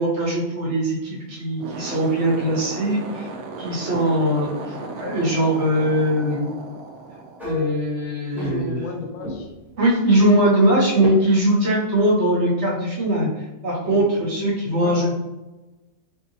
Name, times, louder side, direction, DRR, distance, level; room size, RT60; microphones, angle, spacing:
voice 1, 0.0-3.3 3.6-6.5 7.4-8.8 9.8-13.3 13.6-15.1, right 1 dB, 50° right, -5 dB, 1.2 m, -21 dB
sound 1, 1.5-8.0, right 3 dB, 90° right, 1.1 m, -35 dB
sound 2, 7.4-9.0 9.2-9.7 11.0-11.1, left 2 dB, ahead, 0.9 m, -32 dB
voice 2, 8.3-9.5 13.8-15.2, left 4 dB, 75° left, 3 dB, 0.9 m, -33 dB
4.3 x 2.8 x 2.7 m, 1.0 s
omnidirectional pair, 1.5 m